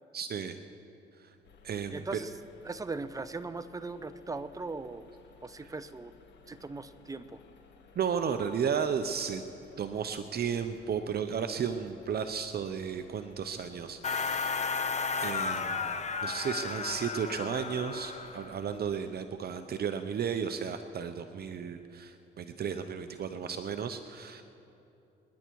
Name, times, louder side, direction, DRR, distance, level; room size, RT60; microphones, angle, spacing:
voice 1, 0.1-0.6 1.2-1.3 1.6-2.2 8.0-9.4 9.8-14.8 15.2-24.4, right 7 dB, 55° right, 8 dB, 0.8 m, -34 dB
sound 1, 1.4-18.8, left 5 dB, 65° left, 1.8 m, -59 dB
voice 2, 1.9-2.3 2.6-5.1 5.4-6.1 6.5-7.4, right 3 dB, 15° right, 12 dB, 0.8 m, -39 dB
sound 2, 14.0-18.6, left 5 dB, 35° left, 1.0 m, -33 dB
27.0 x 10.5 x 4.7 m, 2.8 s
cardioid pair, 90°, 20 cm